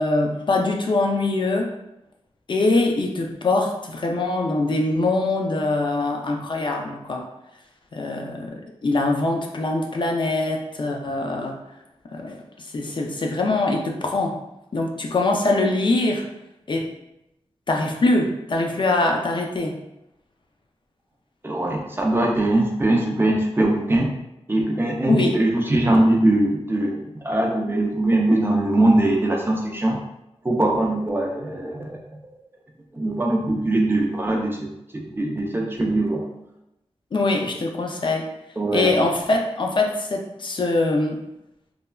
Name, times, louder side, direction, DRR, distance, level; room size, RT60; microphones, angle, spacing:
voice 1, 0.0-1.7 2.5-7.3 7.9-11.6 12.1-14.3 14.7-16.2 16.7-16.9 17.7-19.7 25.1-25.4 37.1-38.3 38.7-41.2, left 2 dB, 50° left, 1 dB, 0.4 m, -23 dB
voice 2, 21.4-24.1 24.5-30.0 30.4-32.4 32.9-36.3 38.6-39.1, right 1 dB, 20° right, 0 dB, 0.5 m, -21 dB
3.1 x 2.2 x 2.2 m, 0.87 s
wide cardioid pair, 85°, 11 cm